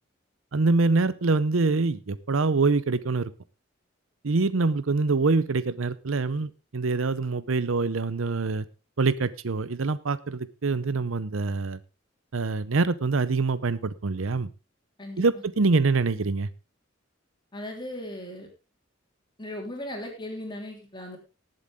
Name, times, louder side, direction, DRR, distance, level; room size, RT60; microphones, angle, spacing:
voice 1, 0.5-3.3 4.2-8.6 9.0-11.8 12.3-14.5 15.2-16.5, right 3 dB, 90° right, 16 dB, 0.7 m, -25 dB
voice 2, 17.5-18.5 19.4-21.2, left 1 dB, 25° left, 2 dB, 3.3 m, -37 dB
19.0 x 7.8 x 3.6 m, 0.29 s
head